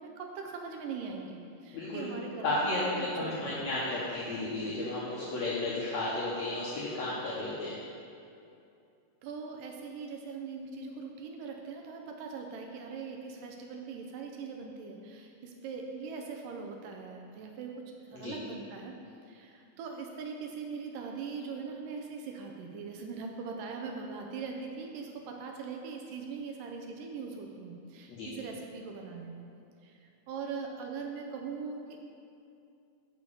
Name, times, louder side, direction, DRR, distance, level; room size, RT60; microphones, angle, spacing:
voice 1, 0.0-3.6 9.2-19.0 19.2-29.4 29.8-32.0, right 5 dB, 85° right, 2 dB, 2.2 m, -41 dB
voice 2, 1.7-2.1 2.4-7.8 18.1-18.4 28.1-28.3, left 2 dB, 65° left, -7 dB, 2.0 m, -33 dB
7.1 x 5.9 x 6.7 m, 2.6 s
omnidirectional pair, 4.0 m